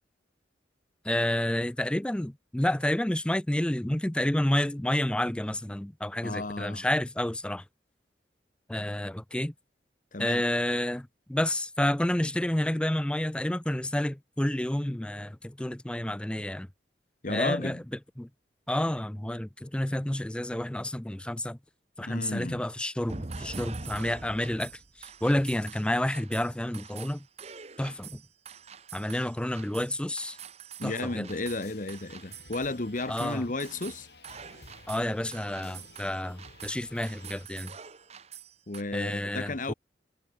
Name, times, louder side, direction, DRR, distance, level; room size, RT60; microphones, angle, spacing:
voice 1, 1.0-7.6 8.7-9.5 10.2-16.7 17.3-17.8 18.2-18.3 18.7-21.6 22.0-24.7 25.0-27.3 27.8-28.2 28.9-30.4 30.8-31.3 33.1-33.4 34.9-37.7 38.9-39.7, left 1 dB, 5° left, 0.4 m, -30 dB
voice 2, 6.2-6.9 10.1-10.4 17.2-17.8 22.1-22.6 30.8-34.1 38.7-39.7, left 2 dB, 45° left, 1.2 m, -33 dB
sound 1, 23.1-38.8, right 5 dB, 35° right, 1.1 m, -45 dB
sound 2, 31.3-37.5, left 3 dB, 65° left, 4.5 m, -53 dB
head